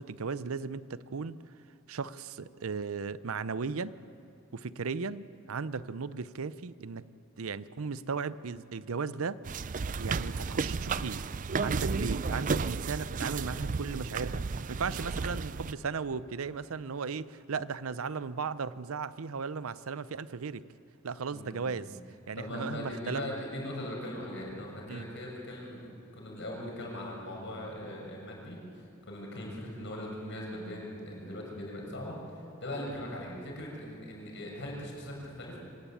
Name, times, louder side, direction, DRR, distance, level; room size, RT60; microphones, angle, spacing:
voice 1, 0.0-1.4 1.9-3.9 4.5-7.1 7.4-9.4 10.0-11.2 11.6-20.6 21.0-22.0 22.3-23.2 24.9-25.1, right 5 dB, 85° right, 16 dB, 0.6 m, -36 dB
sound 1, 9.5-15.7, right 4 dB, 40° right, 0.5 m, -33 dB
voice 2, 21.3-21.9 22.4-25.9 26.1-35.6, left 1 dB, 60° left, -1 dB, 6.5 m, -40 dB
24.0 x 18.0 x 8.6 m, 2.5 s
head